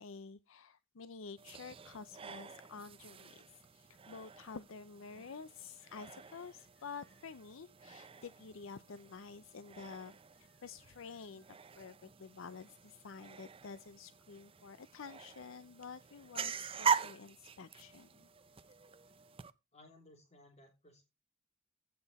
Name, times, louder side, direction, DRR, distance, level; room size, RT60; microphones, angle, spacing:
voice 1, 0.0-18.3, left 5 dB, 65° left, 0.5 m, -50 dB
sound 1, 1.4-19.5, right 6 dB, 25° right, 0.5 m, -43 dB
voice 2, 19.7-21.1, left 1 dB, 30° left, 3.3 m, -60 dB
15.5 x 5.9 x 4.1 m
head